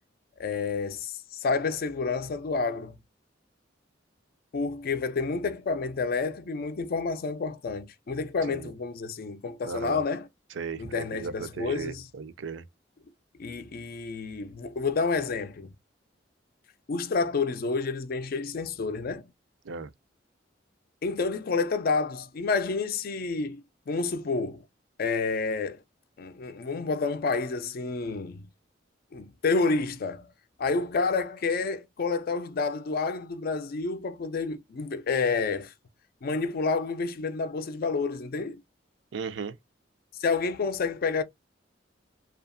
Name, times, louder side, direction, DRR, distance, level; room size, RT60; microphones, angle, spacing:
voice 1, 0.4-3.0 4.5-10.3 10.8-12.0 13.4-15.7 16.9-19.3 21.0-24.6 25.0-25.8 26.2-28.5 29.1-30.3 30.6-35.7 36.2-38.6 40.2-41.2, left 4 dB, 55° left, 0.4 m, -29 dB
voice 2, 9.6-10.0 10.5-12.7 19.6-19.9 39.1-39.6, right 5 dB, 70° right, 0.4 m, -36 dB
2.7 x 2.4 x 2.4 m
head